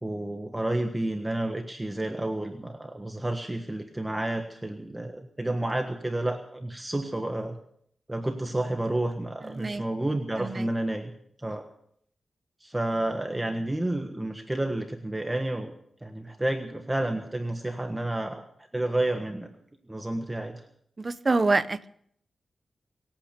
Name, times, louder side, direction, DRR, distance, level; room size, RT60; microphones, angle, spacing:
voice 1, 0.0-7.6 8.1-11.1 11.4-11.7 12.6-15.7 16.0-18.4 18.7-19.5 19.9-20.6, right 1 dB, 15° right, 4 dB, 1.4 m, -30 dB
voice 2, 9.4-9.8 10.4-10.7 21.0-21.9, right 3 dB, 35° right, 13 dB, 0.8 m, -26 dB
23.5 x 8.9 x 6.8 m, 0.68 s
wide cardioid pair, 110°, 0 cm